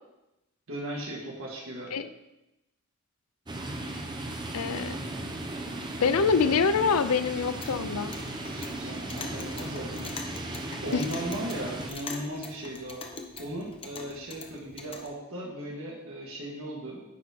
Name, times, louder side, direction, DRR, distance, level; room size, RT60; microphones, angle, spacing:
voice 1, 0.7-1.9 8.5-10.2 10.8-13.0 13.4-17.0, right 1 dB, 65° right, -3 dB, 1.9 m, -37 dB
sound 1, 3.5-11.9, right 1 dB, 20° right, 0.8 m, -36 dB
voice 2, 4.5-5.0 6.0-8.1 10.9-11.0, left 5 dB, 85° left, 12 dB, 0.5 m, -25 dB
Clock, 7.4-15.1, left 3 dB, 25° left, 0.8 m, -43 dB
9.4 x 4.2 x 6.0 m, 0.94 s
head